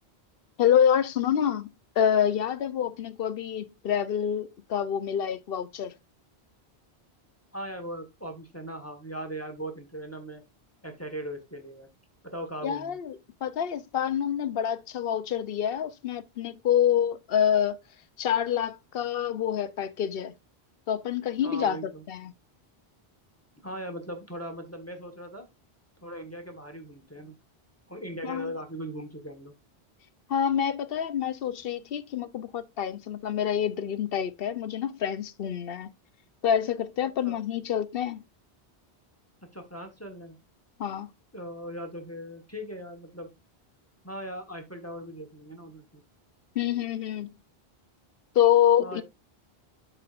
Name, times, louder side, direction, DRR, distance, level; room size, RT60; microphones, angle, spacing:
voice 1, 0.6-1.7 2.0-5.9 12.6-13.2 13.4-17.8 18.2-20.3 20.9-21.8 22.1-22.3 28.2-28.5 30.3-35.9 36.4-38.2 40.8-41.1 46.6-47.3 48.3-49.0, left 9 dB, 65° left, 0.9 m, -27 dB
voice 2, 7.5-10.4 10.8-11.9 12.3-13.0 21.4-22.0 23.6-25.5 26.0-27.3 27.9-29.5 37.2-37.4 39.5-40.4 41.3-43.3 44.0-46.0 48.8-49.0, right 1 dB, 15° left, 1.2 m, -39 dB
12.5 x 4.4 x 2.4 m
omnidirectional pair, 1.1 m